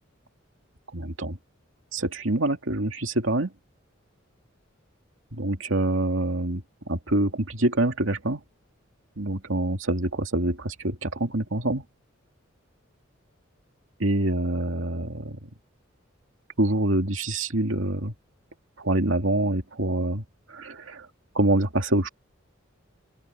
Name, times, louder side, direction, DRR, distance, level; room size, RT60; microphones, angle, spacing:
voice 1, 0.9-1.4 1.9-3.5 5.4-6.6 6.9-8.4 9.2-11.8 14.0-15.4 16.6-18.1 18.8-20.2 20.5-21.1 21.3-22.1, right 1 dB, 70° right, 2.6 m, -25 dB
open air
head